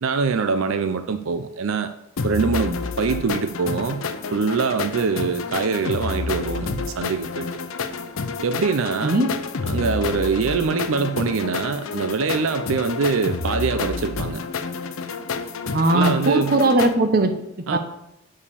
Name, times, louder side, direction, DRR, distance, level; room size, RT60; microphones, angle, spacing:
voice 1, 0.0-1.9 2.2-4.0 4.3-7.5 8.4-9.2 9.7-14.4 15.9-16.6 17.7-17.8, right 5 dB, 80° right, 9 dB, 0.5 m, -24 dB
sound 1, 2.2-16.9, left 4 dB, 85° left, 0.7 m, -29 dB
voice 2, 15.7-17.3 17.7-17.8, right 2 dB, 45° right, 7 dB, 0.9 m, -19 dB
7.3 x 4.9 x 7.0 m, 0.85 s
head